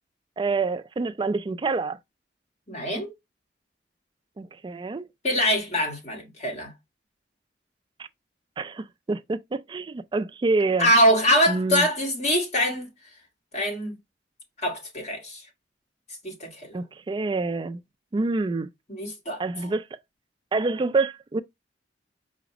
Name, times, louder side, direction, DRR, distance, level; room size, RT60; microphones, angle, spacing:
voice 1, 0.4-2.0 4.4-5.1 8.6-10.9 11.5-11.9 16.7-17.8 18.1-18.7 19.4-19.8 20.5-21.4, right 3 dB, 25° right, 0.3 m, -27 dB
voice 2, 2.7-3.1 5.2-6.7 10.8-12.9 13.5-13.9 14.6-15.4 16.2-16.8 18.9-19.7, equal, 40° left, 1.7 m, -24 dB
4.9 x 2.1 x 4.7 m
head